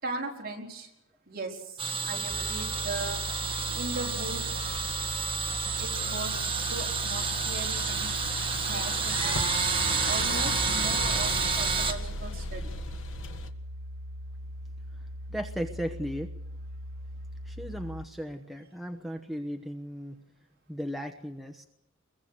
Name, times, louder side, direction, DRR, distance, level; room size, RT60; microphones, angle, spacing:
voice 1, 0.0-0.9 1.3-3.2 3.7-4.4 5.8-8.1 8.6-9.6 10.0-12.7, right 2 dB, 45° right, 0 dB, 4.8 m, -38 dB
sound 1, 1.8-11.9, right 5 dB, 25° right, 1.9 m, -30 dB
sound 2, 2.3-18.1, equal, 80° right, 1.8 m, -41 dB
sound 3, 4.0-13.5, left 1 dB, 65° left, 1.7 m, -39 dB
voice 2, 14.9-16.3 17.4-20.2 20.7-21.7, equal, ahead, 5 dB, 1.0 m, -36 dB
24.5 x 22.5 x 6.7 m, 0.78 s
head